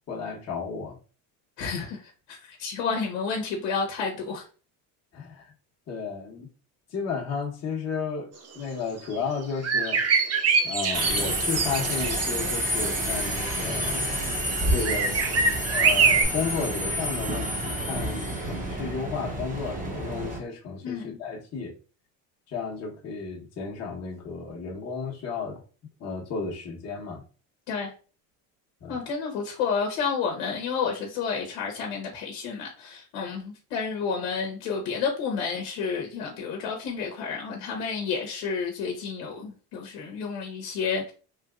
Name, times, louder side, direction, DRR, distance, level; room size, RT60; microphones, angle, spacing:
voice 1, 0.1-1.0 5.1-5.5 5.9-6.5 6.9-10.0 10.6-14.1 14.7-15.2 15.7-21.7 22.5-25.6 26.0-27.2 28.8-29.0, left 5 dB, 35° left, 1.0 m, -33 dB
voice 2, 1.6-4.4 20.8-21.2 27.7-27.9 28.9-41.1, left 5 dB, 75° left, 1.0 m, -30 dB
sound 1, 9.1-9.2 9.6-12.3 13.5-14.0 14.8-16.2, right 5 dB, 35° right, 0.7 m, -24 dB
Subway metro underground, 10.9-20.4, right 1 dB, 20° right, 0.9 m, -29 dB
3.3 x 2.8 x 2.4 m
supercardioid pair, 100°, 44 cm